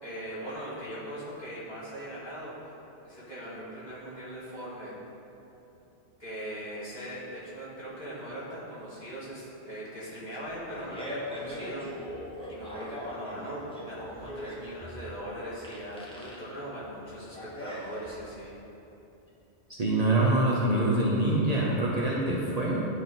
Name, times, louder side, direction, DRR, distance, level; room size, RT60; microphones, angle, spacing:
voice 1, 0.0-2.7 3.0-4.9 6.2-11.9 12.5-18.5, equal, 40° left, -9 dB, 2.1 m, -40 dB
Fart, 10.7-18.4, left 1 dB, 5° left, 1.1 m, -41 dB
voice 2, 19.7-22.8, right 2 dB, 40° right, -6 dB, 0.9 m, -25 dB
11.0 x 4.1 x 4.1 m, 2.9 s
omnidirectional pair, 1.1 m